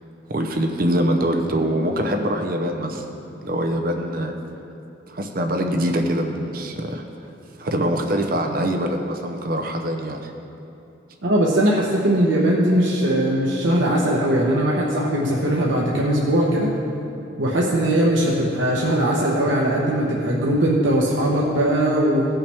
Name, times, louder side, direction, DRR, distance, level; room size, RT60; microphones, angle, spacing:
voice 1, 0.3-3.0 3.4-4.3 5.1-7.3 7.6-10.3, equal, 50° right, 4 dB, 0.6 m, -24 dB
voice 2, 11.2-16.7 17.4-22.3, right 1 dB, 80° right, -4 dB, 1.0 m, -20 dB
17.0 x 5.7 x 3.4 m, 2.8 s
head